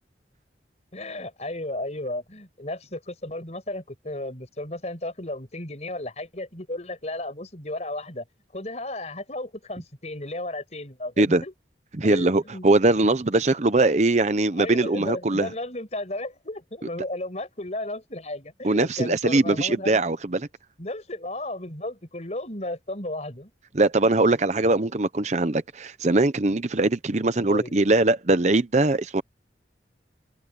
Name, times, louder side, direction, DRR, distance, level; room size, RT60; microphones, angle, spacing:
voice 1, 0.9-8.2 8.5-11.5 12.0-12.7 14.6-20.0 20.8-23.5 27.5-27.8, left 1 dB, 40° left, 5.9 m, -34 dB
voice 2, 12.0-15.5 18.6-20.5 23.7-29.2, right 2 dB, 40° right, 0.8 m, -21 dB
head